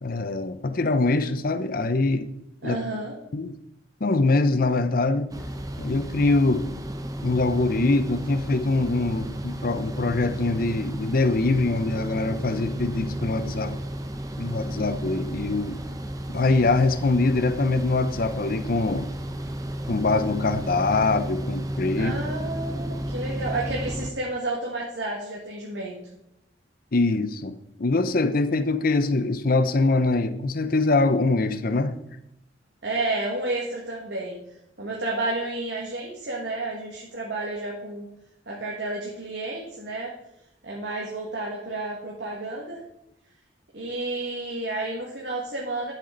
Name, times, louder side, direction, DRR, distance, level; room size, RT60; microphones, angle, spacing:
voice 1, 0.0-2.3 2.6-2.8 3.3-3.5 4.0-5.3 5.8-6.6 7.2-13.8 14.4-15.8 16.3-19.1 19.9-22.1 26.9-32.0, left 3 dB, 50° left, 11 dB, 0.7 m, -23 dB
voice 2, 2.6-3.1 22.0-26.0 32.8-34.4 34.8-38.1 38.5-40.1 40.6-42.8 43.7-45.9, right 2 dB, 75° right, -3 dB, 1.9 m, -31 dB
sound 1, 5.3-24.1, right 1 dB, 20° right, 0.9 m, -33 dB
11.0 x 7.4 x 3.9 m, 0.82 s
head